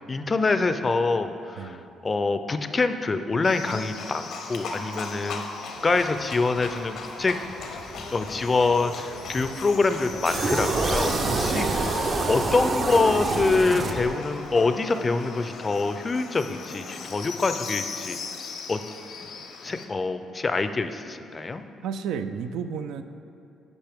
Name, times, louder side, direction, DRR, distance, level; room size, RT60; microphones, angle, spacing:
voice 1, 0.1-1.8 2.0-5.4 5.8-7.4 8.1-12.0 12.3-18.2 18.7-18.8 19.6-21.6, left 3 dB, 30° left, 9 dB, 0.4 m, -25 dB
Livestock farm animals working animals, 3.4-19.9, left 4 dB, 75° left, 0.7 m, -38 dB
sound 1, 5.7-12.4, right 2 dB, 70° right, 1.8 m, -45 dB
sound 2, 10.2-14.5, right 3 dB, 50° right, 0.6 m, -26 dB
voice 2, 11.3-11.9 21.8-23.0, right 7 dB, 90° right, 9 dB, 0.3 m, -32 dB
10.5 x 5.2 x 3.5 m, 2.7 s
cardioid pair, 90°, 0 cm